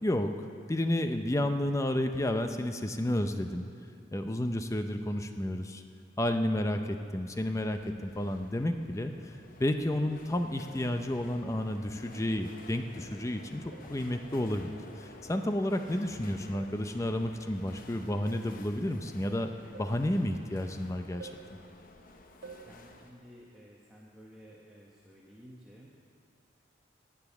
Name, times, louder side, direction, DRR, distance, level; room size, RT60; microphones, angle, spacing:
voice 1, 0.0-0.3 0.7-3.7 4.1-5.8 6.2-9.3 9.6-21.3, left 1 dB, 15° left, 6 dB, 0.5 m, -31 dB
sound 1, 7.3-23.1, left 2 dB, 45° left, 0.9 m, -52 dB
sound 2, 13.7-14.0 14.4-14.7 15.7-16.1 16.5-16.8 18.2-18.6 19.7-20.1 21.2-21.5 22.4-22.7, right 5 dB, 75° right, 1.2 m, -49 dB
voice 2, 15.6-15.9 22.6-25.9, equal, 5° right, -5 dB, 1.1 m, -54 dB
19.0 x 7.1 x 7.2 m, 2.3 s
head